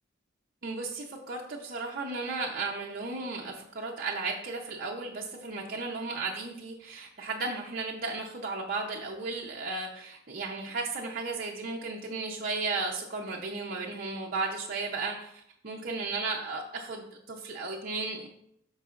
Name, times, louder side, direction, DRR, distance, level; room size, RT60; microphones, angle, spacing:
voice 1, 0.6-18.3, right 3 dB, 45° right, -2 dB, 0.7 m, -35 dB
12.5 x 4.7 x 2.5 m, 0.74 s
head